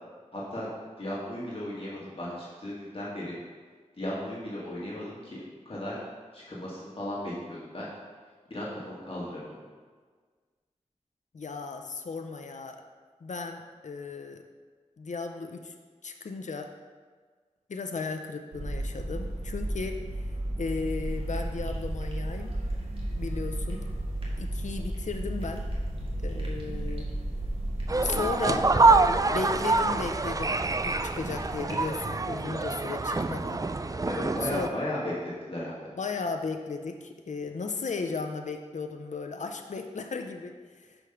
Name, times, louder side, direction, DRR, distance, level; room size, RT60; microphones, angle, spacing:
voice 1, 0.3-0.7 1.0-3.4 3.9-6.0 6.3-7.9 8.5-9.6 34.1-35.8, left 1 dB, 50° left, -7 dB, 2.0 m, -35 dB
voice 2, 11.3-12.8 13.2-14.4 15.0-15.7 16.0-16.7 17.7-20.2 20.6-22.5 23.2-23.8 24.4-25.6 26.2-27.1 28.0-28.7 29.3-30.6 30.8-33.6 34.4-34.7 36.0-41.1, left 4 dB, 75° left, 5 dB, 0.5 m, -35 dB
sound 1, 18.5-29.1, right 1 dB, 70° right, 0.9 m, -34 dB
sound 2, 20.9-32.1, right 1 dB, 45° right, 1.8 m, -42 dB
sound 3, 27.9-34.7, right 3 dB, 30° right, 0.3 m, -26 dB
6.1 x 5.2 x 5.8 m, 1.5 s
wide cardioid pair, 50°, 12 cm